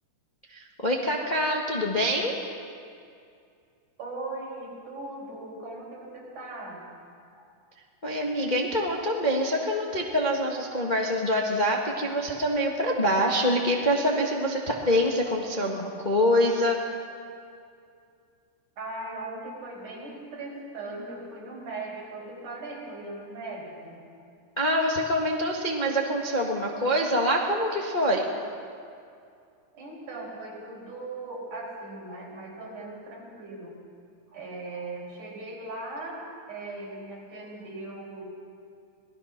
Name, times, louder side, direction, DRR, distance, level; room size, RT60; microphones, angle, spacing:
voice 1, 0.5-2.3 8.0-16.8 24.6-28.2, equal, 20° left, -1 dB, 1.1 m, -25 dB
voice 2, 4.0-6.9 7.3-7.5 8.0-8.1 18.8-24.0 29.7-33.8 34.3-36.2 36.5-38.2, right 2 dB, 75° right, -3 dB, 6.5 m, -39 dB
26.5 x 19.0 x 6.0 m, 2.4 s
omnidirectional pair, 3.6 m